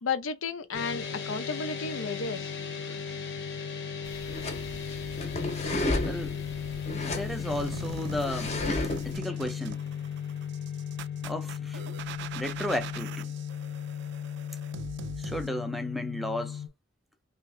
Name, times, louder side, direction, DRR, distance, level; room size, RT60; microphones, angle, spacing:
voice 1, 0.0-2.5 2.9-3.0, left 5 dB, 85° left, 0.6 m, -33 dB
sound 1, 0.7-16.7, left 7 dB, 65° left, 0.9 m, -36 dB
sound 2, 4.1-9.2, left 1 dB, 35° left, 0.7 m, -33 dB
voice 2, 6.0-6.4 7.0-8.6 9.0-9.8 11.2-11.8 12.4-13.3 15.2-16.6, left 1 dB, ahead, 0.5 m, -34 dB
sound 3, 7.5-15.5, right 7 dB, 60° right, 0.3 m, -43 dB
2.9 x 2.8 x 3.1 m
head